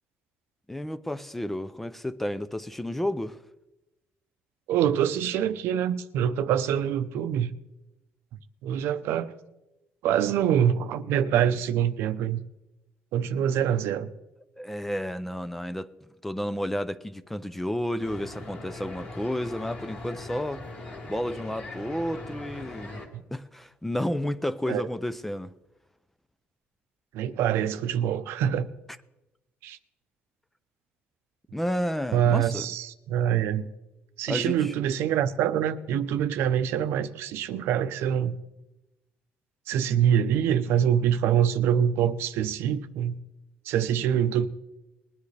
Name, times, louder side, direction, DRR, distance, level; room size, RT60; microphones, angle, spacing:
voice 1, 0.7-3.4 14.6-15.9 16.2-20.6 21.1-25.5 31.5-32.7 34.3-34.7, left 1 dB, 5° left, 0.3 m, -31 dB
voice 2, 4.7-7.5 8.6-9.3 10.0-12.4 13.1-14.1 23.1-23.2 24.7-24.8 27.1-28.7 29.6-29.8 32.1-33.7 34.2-38.4 39.7-43.2 43.7-44.5, right 9 dB, 75° right, 0.7 m, -25 dB
sound 1, 18.0-23.1, left 2 dB, 40° left, 1.9 m, -41 dB
20.5 x 10.5 x 3.3 m
cardioid pair, 180°, 4 cm